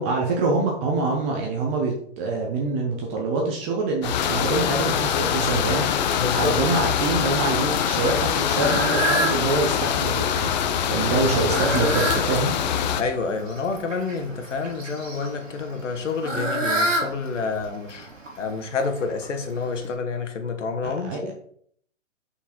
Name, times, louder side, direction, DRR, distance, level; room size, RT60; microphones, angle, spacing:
voice 1, 0.0-5.9 6.4-12.5 20.8-21.3, right 3 dB, 10° right, 0 dB, 0.4 m, -25 dB
sound 1, 4.0-13.0, left 9 dB, 35° left, 0.6 m, -24 dB
Fowl, 4.5-19.9, right 1 dB, 80° right, 2.8 m, -32 dB
voice 2, 6.2-6.6 13.0-18.1 18.4-21.3, left 4 dB, 70° left, 6 dB, 1.5 m, -28 dB
5.7 x 4.5 x 4.3 m, 0.62 s
hypercardioid pair, 130°, 38 cm